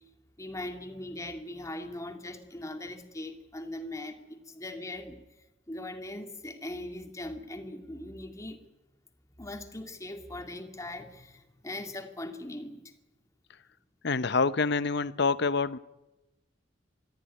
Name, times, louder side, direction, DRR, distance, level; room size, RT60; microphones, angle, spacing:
voice 1, 0.4-5.2 5.7-8.7 9.4-12.8, left 1 dB, 15° left, 2.2 m, -40 dB
voice 2, 14.0-15.8, left 4 dB, 65° left, 0.8 m, -26 dB
22.0 x 14.5 x 9.8 m
head